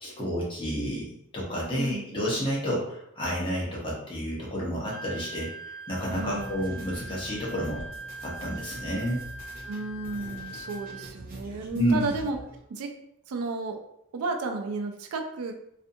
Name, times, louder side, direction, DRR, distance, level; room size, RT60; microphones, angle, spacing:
voice 1, 0.0-1.1 1.3-7.8 8.2-9.2 11.7-12.1, equal, 20° left, -5 dB, 0.7 m, -30 dB
voice 2, 1.7-2.1 6.1-6.6 9.6-12.4 12.7-12.9 13.3-13.8 14.1-15.5, right 3 dB, 75° right, 4 dB, 0.4 m, -33 dB
Wind instrument woodwind instrument, 4.9-11.1, right 2 dB, 70° left, 0.6 m, -42 dB
sound 1, 6.0-12.6, right 1 dB, 40° right, 0.7 m, -45 dB
2.5 x 2.4 x 2.6 m, 0.77 s
head